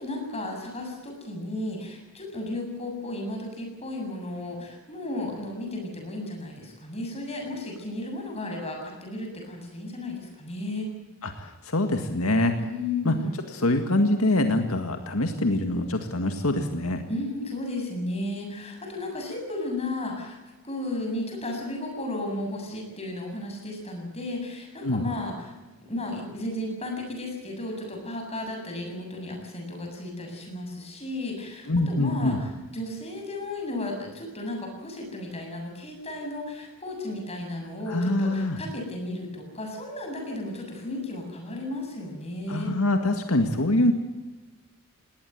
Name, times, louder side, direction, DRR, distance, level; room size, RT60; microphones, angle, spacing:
voice 1, 0.0-10.9 12.6-13.3 17.1-20.4 20.6-25.6 25.9-42.8, left 2 dB, 30° left, 2 dB, 7.5 m, -34 dB
voice 2, 11.2-12.5 13.0-13.2 13.5-17.0 24.8-25.0 31.7-32.4 37.9-38.6 42.5-43.9, left 1 dB, 80° left, 6 dB, 2.0 m, -24 dB
20.0 x 18.5 x 9.3 m, 1.1 s
head